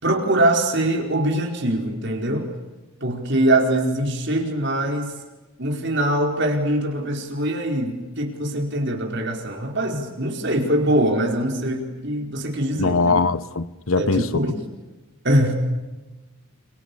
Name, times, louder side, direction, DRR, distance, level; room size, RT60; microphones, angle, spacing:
voice 1, 0.0-2.5 3.0-5.1 5.6-13.2 14.0-14.5 15.2-15.5, right 1 dB, 55° right, 4.7 m, -23 dB
voice 2, 12.8-14.3, left 3 dB, 75° left, 1.1 m, -21 dB
29.5 x 28.0 x 7.1 m
head